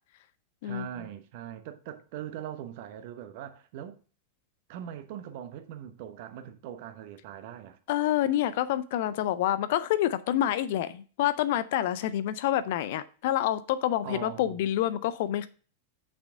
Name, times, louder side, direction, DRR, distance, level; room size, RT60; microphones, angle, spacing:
voice 1, 0.6-4.0 4.7-7.8 14.0-14.6, right 10 dB, 50° right, 1.1 m, -41 dB
voice 2, 7.9-15.5, left 12 dB, 50° left, 0.6 m, -27 dB
8.2 x 6.3 x 3.7 m
figure-of-eight pair, 90°, 0 cm